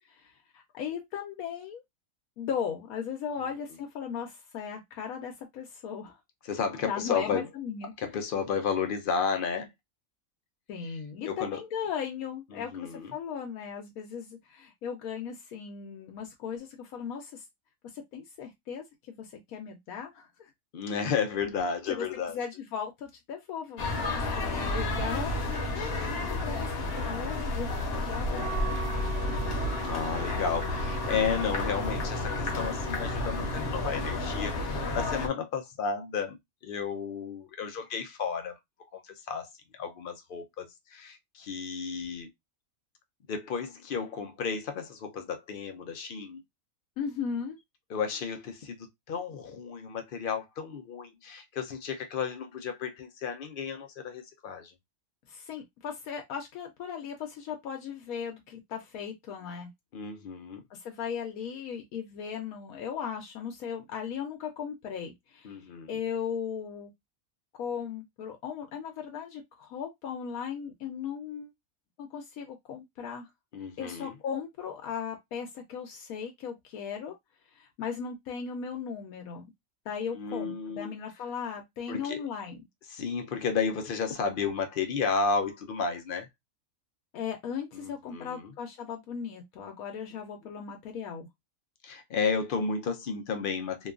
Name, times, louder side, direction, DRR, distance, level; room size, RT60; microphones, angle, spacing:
voice 1, 0.2-1.8 2.4-6.2 6.9-7.9 10.7-17.4 17.9-18.8 19.2-20.5 21.9-22.1 22.3-23.9 24.4-28.6 47.0-47.6 55.3-59.7 60.7-65.5 65.9-66.9 67.6-71.5 72.0-73.3 73.8-77.2 77.5-79.4 79.9-82.6 87.1-91.3, left 7 dB, 85° left, 1.1 m, -37 dB
voice 2, 6.4-7.5 8.0-9.7 11.2-11.6 12.5-13.1 20.7-22.4 24.1-24.7 29.1-38.6 38.9-42.3 43.3-46.4 47.9-54.7 59.9-60.6 65.4-65.9 73.5-74.1 80.1-80.9 81.9-82.2 82.9-86.3 87.7-88.5 91.8-93.9, left 5 dB, 70° left, 0.5 m, -33 dB
sound 1, 23.8-35.3, left 2 dB, 55° left, 0.9 m, -31 dB
Wind instrument woodwind instrument, 28.3-34.2, right 7 dB, 60° right, 0.7 m, -42 dB
2.8 x 2.3 x 2.3 m
omnidirectional pair, 1.5 m